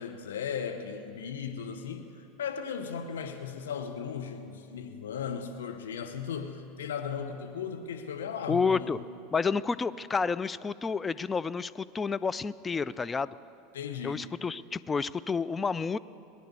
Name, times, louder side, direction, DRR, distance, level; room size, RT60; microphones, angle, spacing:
voice 1, 0.0-9.0 13.7-14.2, left 7 dB, 80° left, 6 dB, 0.9 m, -36 dB
voice 2, 8.5-9.0 9.3-13.3 14.0-16.0, left 5 dB, 20° left, 16 dB, 0.4 m, -30 dB
19.0 x 10.5 x 6.8 m, 2.7 s
hypercardioid pair, 85°, 0 cm